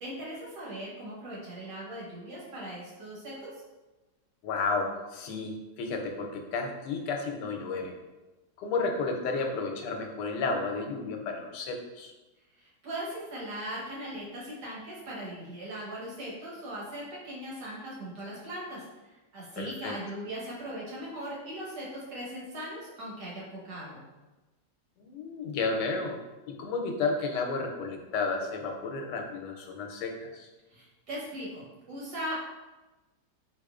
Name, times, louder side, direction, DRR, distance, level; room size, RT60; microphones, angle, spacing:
voice 1, 0.0-3.6 12.6-24.0 30.7-32.4, right 1 dB, 85° right, -6 dB, 1.7 m, -39 dB
voice 2, 4.4-7.9 8.6-12.1 19.6-20.0 25.0-26.2 26.5-30.5, left 4 dB, 90° left, 2 dB, 1.2 m, -32 dB
3.9 x 2.9 x 2.4 m, 1.1 s
omnidirectional pair, 1.8 m